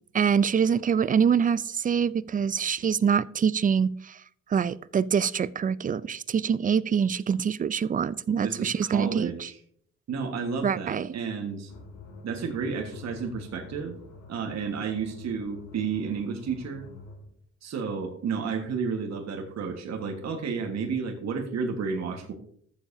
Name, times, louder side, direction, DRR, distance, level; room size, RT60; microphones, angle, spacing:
voice 1, 0.1-4.2 4.5-9.5 10.6-11.1, right 7 dB, 30° right, 0.4 m, -25 dB
voice 2, 8.4-9.6 10.1-11.7 12.2-13.9 14.3-16.9 17.6-22.3, right 5 dB, 60° right, 1.5 m, -31 dB
sound 1, 11.7-17.3, left 3 dB, 75° left, 3.6 m, -47 dB
13.5 x 7.3 x 2.7 m
cardioid pair, 90°, 30 cm